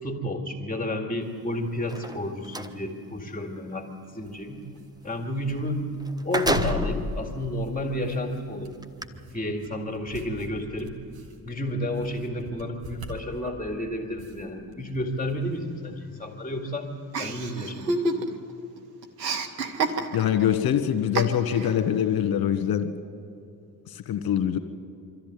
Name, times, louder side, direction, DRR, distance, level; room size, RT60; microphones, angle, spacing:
voice 1, 0.0-4.6 5.0-5.8 6.2-8.8 9.3-10.9 11.4-16.9 17.2-18.0, left 1 dB, 15° left, 2 dB, 2.4 m, -31 dB
sound 1, 1.8-2.7 5.6-5.7 6.0-7.1 7.8-7.9 8.8-9.0, right 1 dB, 10° right, 1.1 m, -29 dB
sound 2, 4.3-4.4 4.7-5.6 5.9-13.7 14.2-14.9 15.2-15.6, left 3 dB, 50° right, 2.3 m, -37 dB
Chuckle chortle, 17.1-18.5 18.8-20.4 21.2-21.7, right 3 dB, 85° right, 1.0 m, -28 dB
voice 2, 20.1-22.9 23.9-24.6, left 9 dB, 45° left, 9 dB, 1.6 m, -24 dB
24.5 x 13.5 x 9.5 m, 2.6 s
figure-of-eight pair, 40°, 48 cm